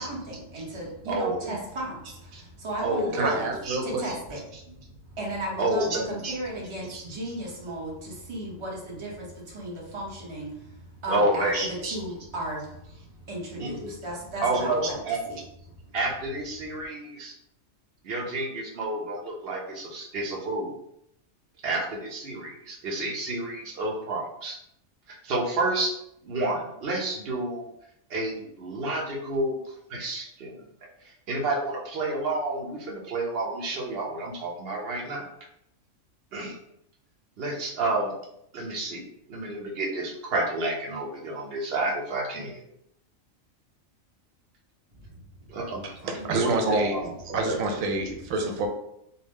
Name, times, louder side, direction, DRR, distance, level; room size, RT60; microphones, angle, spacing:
voice 1, 0.0-3.5 3.8-4.8 5.1-15.0 15.3-15.4, right 1 dB, 25° right, -4 dB, 0.8 m, -35 dB
voice 2, 1.1-1.5 2.3-2.4 2.8-3.8 4.0-4.2 5.6-6.3 6.8-7.0 11.1-12.0 13.6-13.9 14.4-15.2 15.9-17.3 18.0-20.7 21.6-24.6 25.1-25.9 26.2-27.7 28.1-29.6 29.9-30.5 31.3-35.3 36.3-36.6 37.4-38.1 38.5-39.0 39.3-42.6 45.5-47.6, right 2 dB, 55° right, -1 dB, 0.9 m, -29 dB
voice 3, 3.1-4.0 45.8-46.9 47.3-48.7, right 3 dB, 90° right, 3 dB, 1.0 m, -28 dB
2.7 x 2.1 x 3.4 m, 0.76 s
omnidirectional pair, 1.4 m